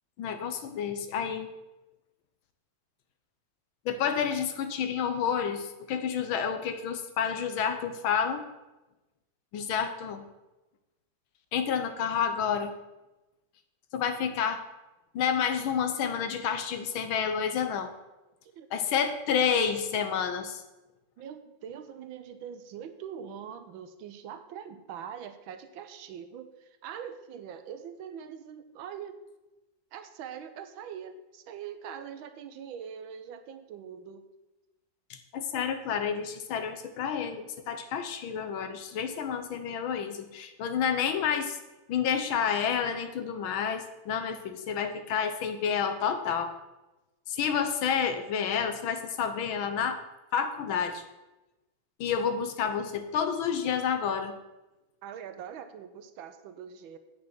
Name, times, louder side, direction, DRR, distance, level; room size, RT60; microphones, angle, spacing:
voice 1, 0.2-1.5 3.8-8.5 9.5-10.2 11.5-12.7 13.9-14.6 15.1-17.9 18.7-20.6 35.1-41.6 41.9-46.5 47.3-50.0 50.3-51.0 52.0-54.3, left 7 dB, 85° left, 8 dB, 1.7 m, -29 dB
voice 2, 21.2-29.2 29.9-34.2 55.0-57.0, right 8 dB, 85° right, 9 dB, 1.6 m, -43 dB
8.7 x 6.2 x 6.1 m, 1.0 s
omnidirectional pair, 2.1 m